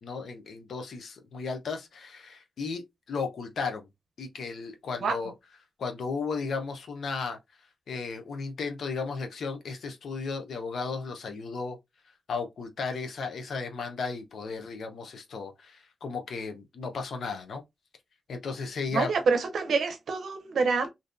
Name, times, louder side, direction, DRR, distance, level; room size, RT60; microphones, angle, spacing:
voice 1, 0.0-3.9 4.2-5.3 5.8-7.4 7.9-11.8 12.3-17.6 18.3-19.1, left 4 dB, 75° left, 0.6 m, -35 dB
voice 2, 18.9-20.9, right 4 dB, 75° right, 0.6 m, -26 dB
2.6 x 2.1 x 2.4 m
cardioid pair, 70°, 0 cm